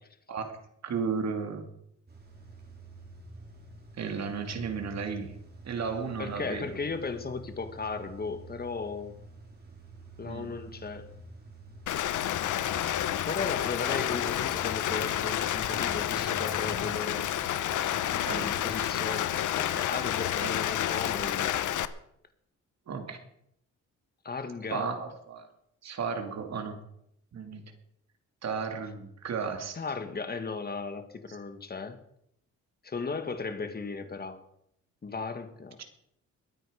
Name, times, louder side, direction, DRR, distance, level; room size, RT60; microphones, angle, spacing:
voice 1, 0.8-1.7 4.0-5.4 5.6-6.7 10.2-10.5 17.3-17.4 18.2-18.5 18.8-18.9 20.4-20.5 22.9-23.2 24.7-25.5 25.8-26.8 27.3-27.7 28.4-29.7 35.8-35.9, right 5 dB, 60° right, 2.5 m, -34 dB
Car / Engine starting / Idling, 2.1-18.6, right 3 dB, 30° right, 3.7 m, -48 dB
voice 2, 6.2-9.2 10.2-11.1 13.2-17.4 18.3-21.6 24.2-24.9 29.7-32.0 32.8-34.4 35.0-35.8, left 4 dB, 30° left, 1.8 m, -36 dB
Rain, 11.9-21.9, left 11 dB, 75° left, 0.8 m, -30 dB
21.5 x 9.4 x 5.1 m
cardioid pair, 110°, 30 cm